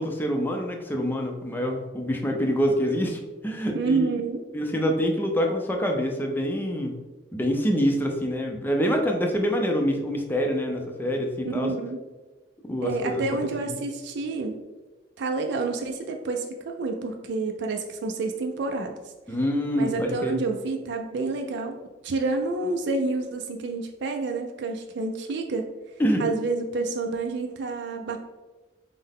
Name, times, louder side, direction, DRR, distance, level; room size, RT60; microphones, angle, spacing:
voice 1, 0.0-4.1 4.5-6.9 7.3-11.7 12.7-13.2 13.6-13.8 19.3-20.4 26.0-26.2, equal, 10° left, 2 dB, 0.5 m, -26 dB
voice 2, 3.7-4.4 11.4-12.0 12.8-14.6 15.2-18.9 19.7-21.8 22.0-25.7 26.2-28.2, right 3 dB, 65° right, 3 dB, 0.4 m, -29 dB
5.5 x 2.1 x 3.6 m, 1.2 s
head